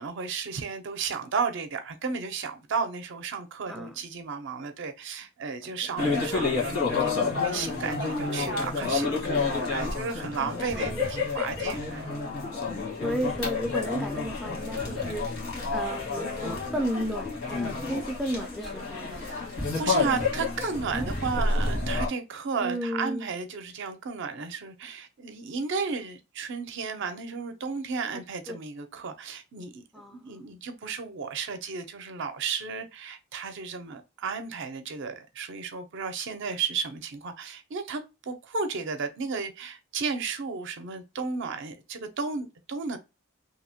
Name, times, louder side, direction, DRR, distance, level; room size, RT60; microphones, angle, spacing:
voice 1, 0.0-12.1 12.6-12.8 19.2-19.4 19.8-29.8 30.1-43.0, right 5 dB, 60° right, 0.5 m, -33 dB
sound 1, 6.0-22.1, left 3 dB, 80° left, 1.2 m, -29 dB
voice 2, 9.0-9.4 10.4-11.1 12.1-12.3 13.0-15.4 15.7-19.3 20.9-21.1 22.6-23.3 28.1-28.2 28.5-28.6 29.9-30.4, equal, ahead, 0.3 m, -34 dB
2.8 x 2.1 x 2.7 m
head